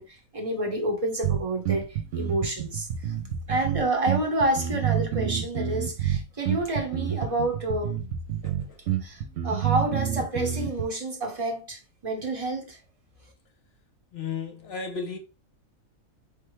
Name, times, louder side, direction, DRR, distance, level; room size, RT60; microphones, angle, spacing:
voice 1, 0.0-3.1 3.5-8.0 9.0-12.8, right 1 dB, 25° right, 1.0 m, -29 dB
sound 1, 1.2-10.8, right 10 dB, 65° right, 1.0 m, -28 dB
voice 2, 8.4-9.0 14.1-15.2, left 5 dB, 55° left, 0.9 m, -35 dB
4.5 x 3.4 x 3.2 m
omnidirectional pair, 1.4 m